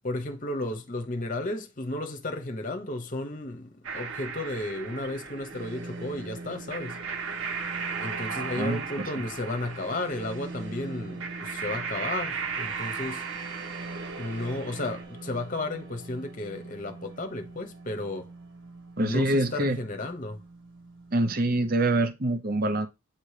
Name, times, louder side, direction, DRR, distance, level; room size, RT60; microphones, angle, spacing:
voice 1, 0.0-7.0 8.0-13.3 14.2-18.3 19.0-20.4, left 2 dB, 35° left, 0.9 m, -33 dB
sound 1, 3.8-15.0, right 5 dB, 75° right, 1.8 m, -36 dB
sound 2, 5.5-21.7, right 2 dB, 60° right, 1.7 m, -43 dB
voice 2, 8.3-9.1 19.0-19.8 21.1-22.9, right 2 dB, 40° right, 0.7 m, -26 dB
8.8 x 2.9 x 4.9 m
head